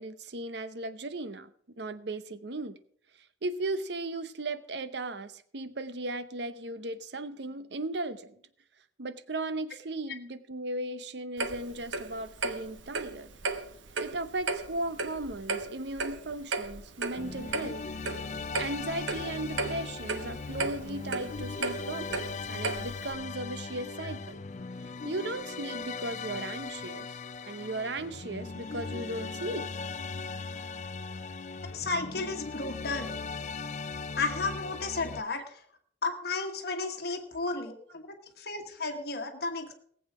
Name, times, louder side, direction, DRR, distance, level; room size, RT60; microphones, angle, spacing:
voice 1, 0.0-1.5 1.8-2.8 3.2-8.4 9.0-13.3 14.0-17.9 18.6-24.4 24.8-27.2 27.5-29.7, right 2 dB, 65° right, 13 dB, 0.8 m, -36 dB
Clock, 11.4-23.1, right 3 dB, 80° right, 1.1 m, -35 dB
sound 1, 17.2-35.2, left 4 dB, 40° left, 0.4 m, -39 dB
voice 2, 31.7-33.2 34.2-35.6 36.0-38.1 38.4-39.7, left 3 dB, 55° left, 5 dB, 1.2 m, -33 dB
19.0 x 7.9 x 4.9 m, 0.63 s
head